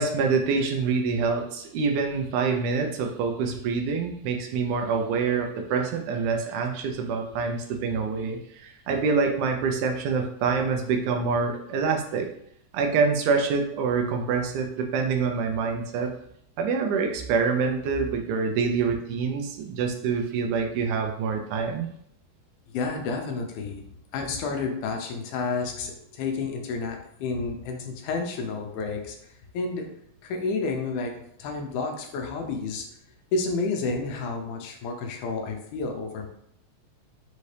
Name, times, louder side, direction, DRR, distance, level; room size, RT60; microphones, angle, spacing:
voice 1, 0.0-12.3 12.7-16.1 16.6-21.9, right 5 dB, 80° right, 3 dB, 2.1 m, -26 dB
voice 2, 22.7-23.8 24.1-29.9 30.2-31.1 31.4-32.9 33.3-36.3, left 4 dB, 80° left, 3 dB, 2.1 m, -30 dB
5.7 x 2.7 x 3.2 m, 0.71 s
omnidirectional pair, 3.5 m